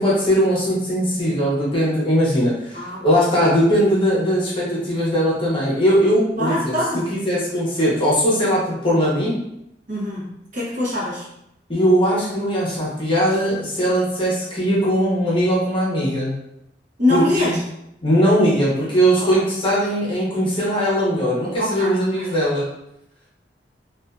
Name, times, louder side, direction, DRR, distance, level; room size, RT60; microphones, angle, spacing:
voice 1, 0.0-6.7 7.1-9.4 11.7-16.3 17.1-17.6 18.0-22.6, equal, 30° left, -6 dB, 0.8 m, -19 dB
voice 2, 2.7-3.3 6.4-7.1 9.9-11.3 17.0-17.6 19.2-19.4 21.6-22.4, left 1 dB, 45° right, -6 dB, 0.8 m, -24 dB
2.6 x 2.4 x 2.3 m, 0.80 s
head